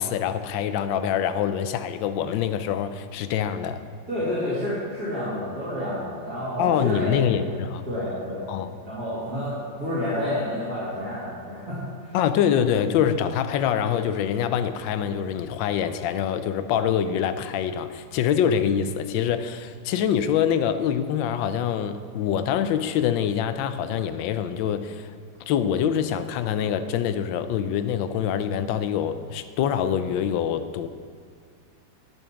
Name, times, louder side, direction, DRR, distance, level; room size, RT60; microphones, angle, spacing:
voice 1, 0.0-3.9 6.6-7.9 8.5-8.7 12.1-25.1 25.5-30.9, left 8 dB, 85° left, 1.3 m, -25 dB
voice 2, 4.1-7.5 7.8-8.4 8.8-12.2, left 1 dB, 50° right, 3.2 m, -29 dB
12.5 x 5.4 x 5.9 m
omnidirectional pair, 2.0 m